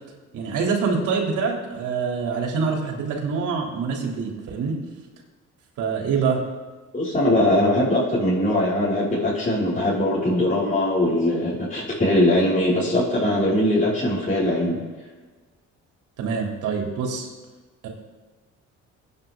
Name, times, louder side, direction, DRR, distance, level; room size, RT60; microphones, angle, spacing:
voice 1, 0.3-4.8 5.8-6.4 16.2-17.3 17.8-17.9, right 5 dB, 85° right, 0 dB, 3.5 m, -25 dB
voice 2, 6.9-14.8, left 1 dB, 25° left, -9 dB, 5.7 m, -21 dB
23.0 x 9.5 x 3.9 m, 1.3 s
cardioid pair, 90°, 30 cm